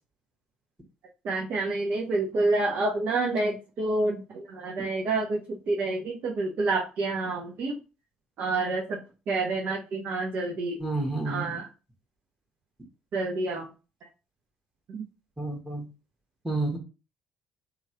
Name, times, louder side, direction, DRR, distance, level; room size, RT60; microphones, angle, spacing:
voice 1, 1.2-7.8 8.4-10.8 11.3-11.7 13.1-13.7 14.9-15.1, right 2 dB, 55° right, 0 dB, 0.7 m, -28 dB
voice 2, 10.8-11.6 15.4-15.8 16.4-16.8, right 2 dB, 5° right, 0 dB, 1.2 m, -30 dB
3.1 x 2.4 x 2.9 m, 0.31 s
hypercardioid pair, 55°, 4 cm